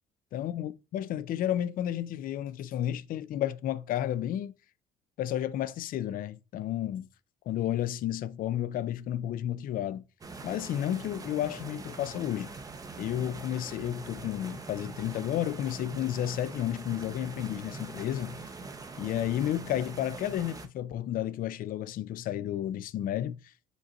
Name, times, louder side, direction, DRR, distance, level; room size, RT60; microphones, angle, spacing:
voice 1, 0.3-4.5 5.2-7.1 7.5-10.0 10.4-12.5 13.0-18.4 19.0-23.4, left 11 dB, 55° left, 0.4 m, -32 dB
sound 1, 10.2-20.7, right 4 dB, 20° right, 0.6 m, -43 dB
5.2 x 2.5 x 4.1 m
cardioid pair, 110°, 17 cm